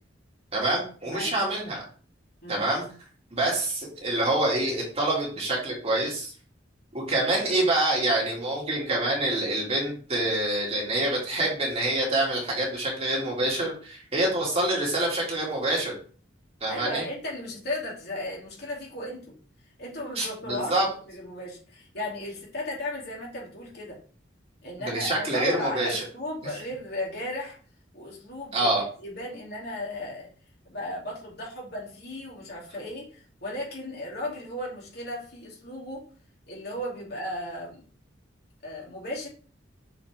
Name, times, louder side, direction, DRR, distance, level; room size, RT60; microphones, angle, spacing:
voice 1, 0.5-1.8 2.5-2.8 3.3-6.3 6.9-15.9 16.6-17.0 20.2-20.8 24.8-26.0 28.5-28.8, right 1 dB, 35° right, -3 dB, 2.4 m, -26 dB
voice 2, 1.0-1.3 2.4-2.6 16.7-19.3 19.8-20.8 21.1-24.0 24.6-27.6 27.9-30.3 30.6-36.1 36.5-37.8 38.6-39.3, left 1 dB, 60° left, -4 dB, 3.0 m, -35 dB
6.9 x 4.8 x 3.6 m, 0.42 s
head